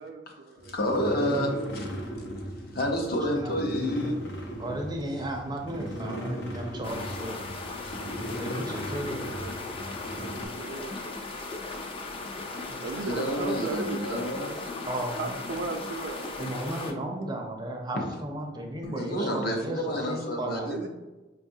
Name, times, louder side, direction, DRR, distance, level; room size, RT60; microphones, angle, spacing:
voice 1, 0.0-0.7 1.2-1.7 9.3-9.6 10.4-11.0 11.4-11.7 12.5-14.8 15.2-16.4 20.7-20.9, right 3 dB, 80° right, 4 dB, 0.5 m, -36 dB
sound 1, 0.6-10.5, equal, 85° left, 0.8 m, -37 dB
voice 2, 0.6-1.8 2.2-2.3 2.7-4.2 8.2-8.3 13.0-14.6 17.9-18.1 18.8-20.9, equal, 55° left, 1 dB, 0.7 m, -29 dB
voice 3, 4.6-7.5 7.8-8.0 8.4-9.2 12.7-12.8 14.9-15.2 16.4-20.8, right 1 dB, 25° right, 2 dB, 0.5 m, -34 dB
sound 2, 6.8-16.9, left 3 dB, 30° left, 0.4 m, -37 dB
5.2 x 2.3 x 2.7 m, 1.1 s
head